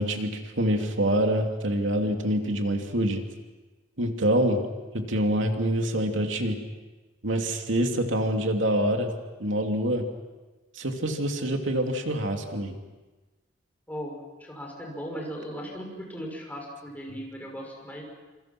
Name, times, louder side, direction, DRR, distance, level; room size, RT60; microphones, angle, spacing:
voice 1, 0.0-3.2 4.0-4.6 4.9-6.6 7.2-9.1 9.4-10.1 10.7-12.8, right 1 dB, 85° right, 3 dB, 2.7 m, -26 dB
voice 2, 13.9-18.0, equal, 10° left, -1 dB, 6.4 m, -37 dB
28.0 x 27.5 x 6.1 m, 1.2 s
head